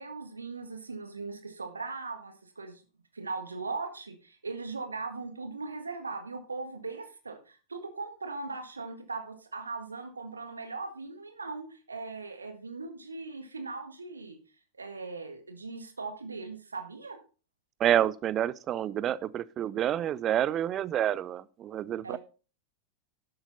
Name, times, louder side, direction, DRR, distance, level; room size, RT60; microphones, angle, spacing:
voice 1, 0.0-2.8 3.1-14.4 14.8-17.2 22.0-22.2, right 3 dB, 75° right, 1.6 m, -39 dB
voice 2, 17.8-22.2, right 11 dB, 30° right, 0.5 m, -28 dB
12.0 x 8.0 x 4.0 m
figure-of-eight pair, 90°, 0 cm